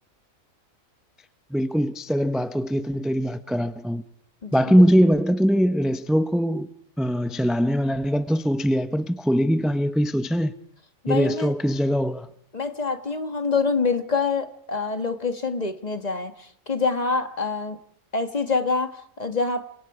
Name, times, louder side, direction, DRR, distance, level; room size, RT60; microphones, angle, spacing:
voice 1, 1.5-4.0 4.5-6.7 7.0-10.5 11.1-12.3, equal, ahead, 0.6 m, -22 dB
voice 2, 4.4-4.8 11.0-11.5 12.5-17.8 18.1-19.7, left 4 dB, 30° left, 1.6 m, -26 dB
29.5 x 25.5 x 4.9 m
omnidirectional pair, 1.4 m